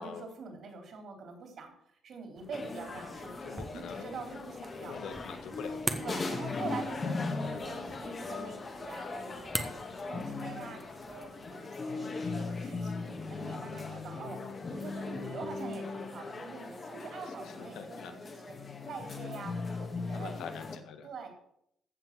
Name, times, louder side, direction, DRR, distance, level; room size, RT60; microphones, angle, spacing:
voice 1, 0.0-1.7 2.0-5.0 6.0-14.4 14.7-18.5 18.8-20.6 21.0-21.3, right 4 dB, 55° right, 4 dB, 3.8 m, -45 dB
sound 1, 2.3-11.5, right 1 dB, 10° right, 1.3 m, -43 dB
sound 2, 2.5-20.8, left 3 dB, 30° left, 1.8 m, -39 dB
voice 2, 3.4-4.2 4.8-5.9 17.7-18.1 20.1-21.3, left 7 dB, 85° left, 7 dB, 1.7 m, -45 dB
15.0 x 5.8 x 7.6 m, 0.72 s
cardioid pair, 135°, 0 cm